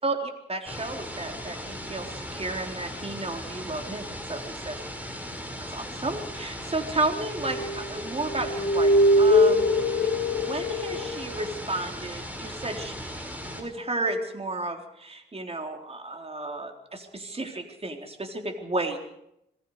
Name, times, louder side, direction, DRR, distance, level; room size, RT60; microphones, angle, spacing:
voice 1, 0.0-4.8 5.7-10.1 10.4-13.3 13.6-19.0, right 2 dB, 35° right, 4 dB, 3.8 m, -33 dB
sound 1, 0.7-13.6, equal, 10° right, 6.1 m, -38 dB
sound 2, 7.5-7.9 8.2-11.3, left 1 dB, 45° left, 3.0 m, -22 dB
26.5 x 21.0 x 4.9 m, 0.79 s
cardioid pair, 70°, 18 cm